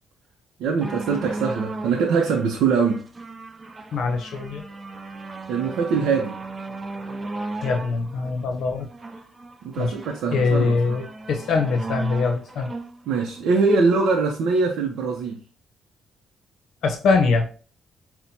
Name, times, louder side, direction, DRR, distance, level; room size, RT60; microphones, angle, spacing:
voice 1, 0.6-3.0 5.5-6.4 9.6-11.0 13.1-15.4, right 4 dB, 80° right, 0 dB, 0.5 m, -22 dB
sound 1, 0.8-14.4 15.1-15.2, right 3 dB, 30° right, 0.4 m, -36 dB
voice 2, 3.9-4.6 7.6-8.9 9.8-9.9 10.3-12.7 16.8-17.5, left 4 dB, 70° left, 4 dB, 0.7 m, -23 dB
5.7 x 2.1 x 2.7 m, 0.38 s
cardioid pair, 90°, 0 cm